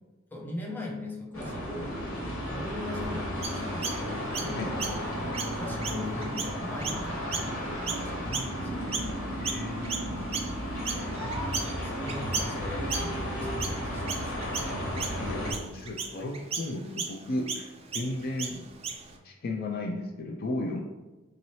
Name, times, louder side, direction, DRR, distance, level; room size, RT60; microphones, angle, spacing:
voice 1, 0.3-8.8 11.6-14.9, left 1 dB, 10° left, -3 dB, 0.6 m, -40 dB
sound 1, 1.3-15.5, equal, 90° left, 1.1 m, -33 dB
Chirp tweet, 3.4-9.2 9.4-19.2, right 5 dB, 30° right, 0.4 m, -36 dB
voice 2, 8.2-8.6 9.4-10.0 15.2-18.6 19.2-20.8, left 2 dB, 50° left, 2 dB, 0.4 m, -34 dB
3.8 x 2.7 x 3.1 m, 1.1 s
head